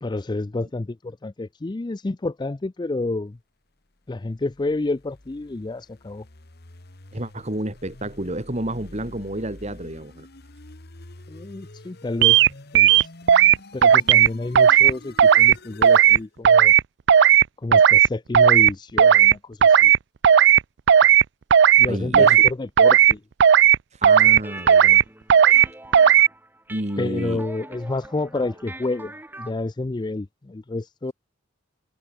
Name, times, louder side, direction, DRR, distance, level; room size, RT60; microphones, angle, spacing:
voice 1, 0.0-3.4 4.1-6.2 11.3-12.4 12.7-13.1 13.7-16.7 17.6-19.9 21.8-23.2 27.0-31.1, left 2 dB, 25° left, 0.4 m, -29 dB
sound 1, 4.1-16.3, left 2 dB, 55° left, 1.9 m, -47 dB
voice 2, 7.1-10.3 21.9-22.4 23.9-25.0 26.7-27.4, right 1 dB, 35° right, 3.1 m, -30 dB
sound 2, 12.2-12.5 12.7-13.6 13.8-14.3 14.6-14.9 15.2-15.5 15.8-16.2 16.4-16.8 17.1-17.4 17.7-18.1 18.3-18.7 19.0-19.3 19.6-20.0 20.2-20.6 20.9-21.2 21.5-21.9 22.1-22.5 22.8-23.1 23.4-23.8 24.0-24.4 24.7-25.0 25.3-25.7 25.9-26.3, right 9 dB, 60° right, 0.4 m, -14 dB
sound 3, 24.4-29.5, right 1 dB, 10° right, 5.0 m, -42 dB
head